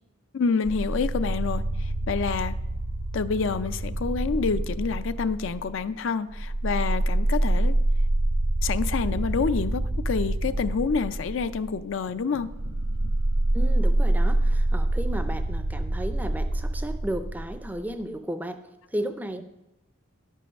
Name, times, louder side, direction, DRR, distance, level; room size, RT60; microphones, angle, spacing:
voice 1, 0.3-2.6 3.1-7.8 8.6-12.5, left 5 dB, 65° left, 13 dB, 0.4 m, -28 dB
sound 1, 0.6-5.8 6.3-17.9, right 1 dB, 65° right, 1.0 m, -26 dB
voice 2, 13.5-18.6 18.9-19.4, right 1 dB, 10° right, 9 dB, 0.4 m, -34 dB
11.0 x 5.5 x 6.4 m, 0.93 s
head